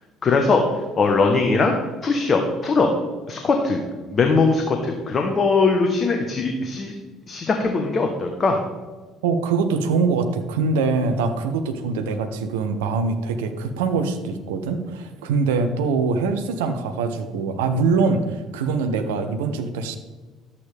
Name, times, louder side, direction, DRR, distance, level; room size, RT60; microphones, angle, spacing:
voice 1, 0.2-1.7 2.0-2.9 3.3-3.8 4.1-7.0 7.3-8.6, left 4 dB, 35° left, 4 dB, 1.2 m, -20 dB
voice 2, 9.2-20.0, right 4 dB, 70° right, 8 dB, 0.8 m, -23 dB
11.5 x 8.3 x 3.5 m, 1.3 s
figure-of-eight pair, 55°, 0 cm